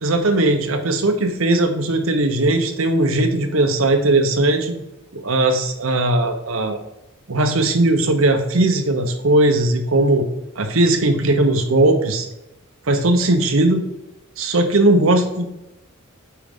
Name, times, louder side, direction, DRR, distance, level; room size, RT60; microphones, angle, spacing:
voice 1, 0.0-4.8 5.1-6.8 7.3-10.2 10.6-12.3 12.9-13.8 14.4-15.5, right 2 dB, 70° right, 6 dB, 0.8 m, -18 dB
8.8 x 4.7 x 3.7 m, 0.91 s
head